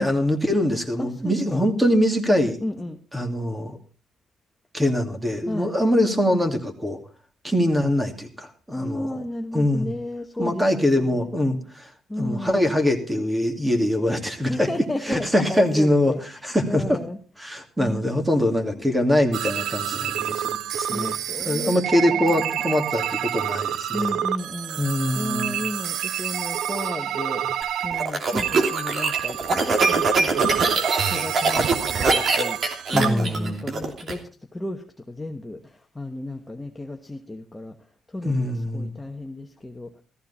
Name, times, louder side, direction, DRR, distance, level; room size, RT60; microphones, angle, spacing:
voice 1, 0.0-2.6 3.1-3.8 4.7-7.0 7.4-9.2 9.5-9.9 10.4-11.9 12.2-14.7 15.0-17.0 17.4-21.2 21.4-24.2 24.8-25.6 32.9-33.6 38.2-38.9, left 1 dB, 10° right, 5 dB, 2.7 m, -23 dB
voice 2, 1.0-1.6 2.6-3.0 5.5-5.7 8.7-11.3 12.1-12.7 14.5-17.2 17.8-18.1 18.6-19.0 20.9-21.8 22.1-22.5 23.9-24.8 25.1-27.4 27.8-32.6 32.9-34.2 34.5-37.8 38.1-39.9, left 1 dB, 15° left, 3 dB, 1.1 m, -33 dB
sound 1, 19.3-33.1, right 10 dB, 80° right, 0.7 m, -28 dB
sound 2, 27.6-34.1, right 3 dB, 50° right, 2.9 m, -23 dB
15.0 x 14.0 x 4.3 m, 0.37 s
cardioid pair, 90°, 0 cm